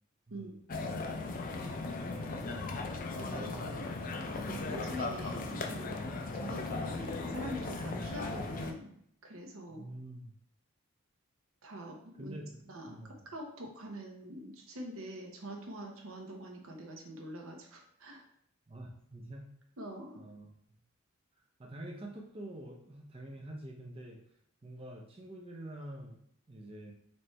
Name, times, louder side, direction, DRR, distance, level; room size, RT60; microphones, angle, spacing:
voice 1, 0.3-0.7 3.3-4.0 4.5-4.8 9.7-10.3 12.2-12.6 12.9-13.1 18.7-19.5 20.2-20.5 21.6-24.4 24.6-26.2 26.5-26.9, right 1 dB, 25° right, -1 dB, 0.5 m, -46 dB
sound 1, 0.7-8.7, left 3 dB, 40° left, 0.4 m, -37 dB
voice 2, 3.1-3.5 4.3-8.9 9.2-9.8 11.6-12.4 12.7-13.0 13.3-18.2 19.8-20.2, equal, 75° right, 1 dB, 0.9 m, -44 dB
4.2 x 3.2 x 3.2 m, 0.69 s
head